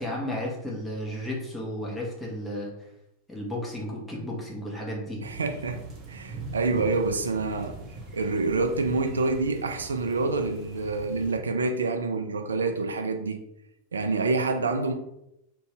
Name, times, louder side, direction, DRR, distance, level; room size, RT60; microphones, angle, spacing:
voice 1, 0.0-2.7 3.3-5.2, left 1 dB, 10° left, -3 dB, 0.9 m, -33 dB
sound 1, 5.2-11.4, right 2 dB, 30° right, 0.7 m, -41 dB
voice 2, 5.2-5.8 6.1-7.8 8.1-13.4 13.9-14.9, right 3 dB, 70° right, 5 dB, 0.3 m, -27 dB
2.6 x 2.4 x 3.4 m, 0.84 s
figure-of-eight pair, 90°, 0 cm